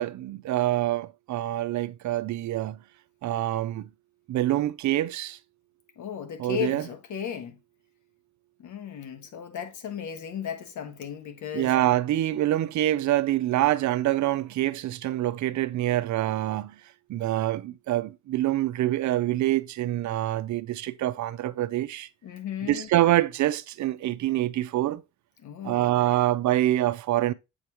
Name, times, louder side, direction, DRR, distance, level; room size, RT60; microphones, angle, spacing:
voice 1, 0.0-2.8 3.2-3.9 4.3-5.4 6.4-6.8 11.5-16.8 17.1-22.1 22.7-25.0 25.6-27.3, right 14 dB, 70° right, 0.6 m, -26 dB
voice 2, 6.0-7.6 8.6-11.7 22.2-22.9 25.4-25.9, left 9 dB, 75° left, 1.5 m, -35 dB
7.9 x 5.2 x 3.0 m
cardioid pair, 90°, 30 cm